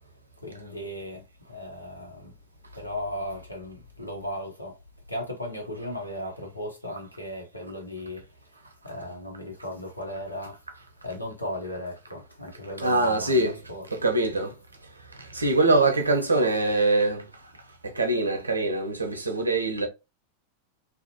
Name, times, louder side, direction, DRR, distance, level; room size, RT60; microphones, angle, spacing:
voice 1, 0.4-2.3 2.7-4.8 5.1-8.2 8.6-10.6 11.0-13.9, left 1 dB, 85° left, 0.8 m, -36 dB
voice 2, 12.8-14.6 15.1-17.3 17.8-19.9, right 2 dB, 80° right, 0.6 m, -24 dB
2.5 x 2.1 x 2.8 m
figure-of-eight pair, 90°, 0 cm